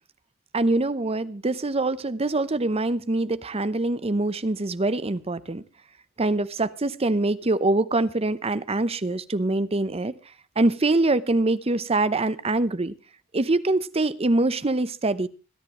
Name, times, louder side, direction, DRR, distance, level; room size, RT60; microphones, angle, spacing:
voice 1, 0.5-5.6 6.2-10.1 10.6-12.9 13.3-15.3, right 2 dB, 30° right, 15 dB, 0.8 m, -24 dB
26.5 x 10.5 x 3.1 m, 0.32 s
head